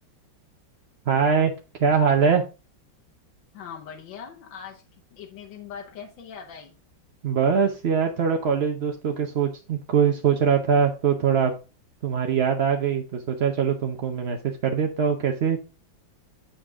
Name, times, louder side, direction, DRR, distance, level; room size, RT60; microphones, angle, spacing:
voice 1, 1.1-1.5 1.8-2.5 7.2-11.5 12.0-15.6, right 7 dB, 60° right, 0.7 m, -22 dB
voice 2, 3.5-4.8 5.1-6.8, left 7 dB, 85° left, 1.6 m, -41 dB
7.7 x 5.8 x 3.5 m
omnidirectional pair, 2.0 m